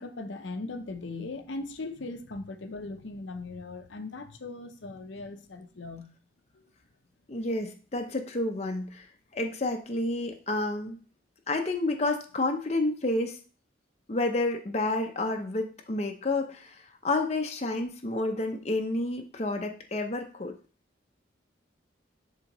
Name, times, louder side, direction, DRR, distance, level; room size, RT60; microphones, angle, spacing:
voice 1, 0.0-6.1 6.5-6.6, left 3 dB, 80° left, 0.7 m, -39 dB
voice 2, 7.3-9.1 9.3-11.0 11.5-13.4 14.1-20.5, left 2 dB, 35° left, 0.6 m, -30 dB
10.5 x 3.7 x 3.0 m
head